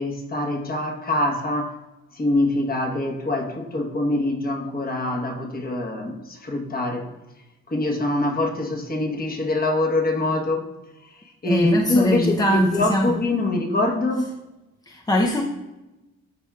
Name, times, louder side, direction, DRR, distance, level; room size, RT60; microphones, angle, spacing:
voice 1, 0.0-1.8 2.1-7.1 7.7-10.7 11.4-14.3, left 2 dB, 30° left, 3 dB, 1.1 m, -24 dB
voice 2, 11.5-13.1 14.9-15.4, left 1 dB, 15° left, 1 dB, 0.6 m, -21 dB
12.0 x 4.3 x 2.3 m, 1.0 s
cardioid pair, 90°, 30 cm